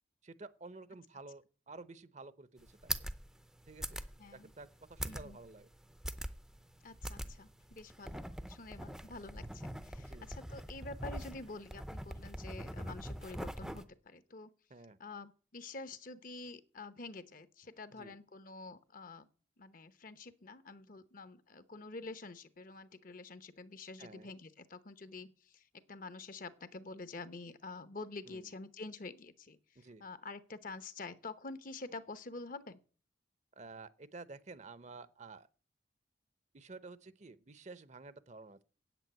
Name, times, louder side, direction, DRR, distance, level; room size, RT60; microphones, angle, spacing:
voice 1, 0.2-2.9 3.7-4.0 4.3-5.7 7.2-7.4 10.0-10.3 14.7-15.0 18.0-18.2 24.0-24.3 28.3-28.5 29.8-30.0 33.6-35.5 36.5-38.6, right 3 dB, 35° right, 0.7 m, -51 dB
sound 1, 2.6-13.8, right 1 dB, ahead, 0.6 m, -43 dB
voice 2, 4.2-4.5 5.0-5.4 6.8-14.5 15.0-19.3 19.6-32.8, left 3 dB, 45° left, 0.9 m, -48 dB
9.1 x 8.3 x 9.1 m
head